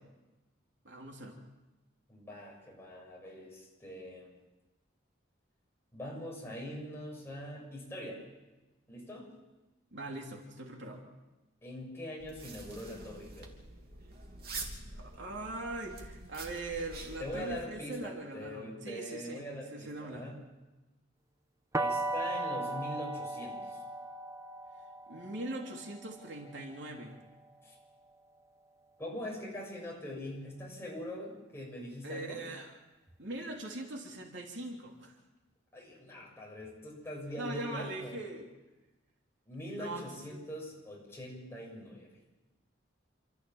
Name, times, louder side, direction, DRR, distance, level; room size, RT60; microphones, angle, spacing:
voice 1, 0.8-1.4 9.9-11.0 14.9-20.3 25.1-27.2 32.0-32.8 33.2-35.2 37.4-38.5 39.8-40.4, right 2 dB, 65° right, 1 dB, 3.1 m, -41 dB
voice 2, 2.1-4.3 5.9-8.2 8.9-9.3 11.6-13.5 17.2-20.4 21.8-23.8 27.6-27.8 29.0-32.4 35.7-38.3 39.5-42.1, left 1 dB, 10° left, -3 dB, 6.9 m, -43 dB
sound 1, 12.2-17.6, right 3 dB, 50° right, 3.1 m, -46 dB
sound 2, 21.7-27.6, right 2 dB, 15° right, 0.9 m, -37 dB
28.5 x 13.5 x 7.2 m, 1.1 s
head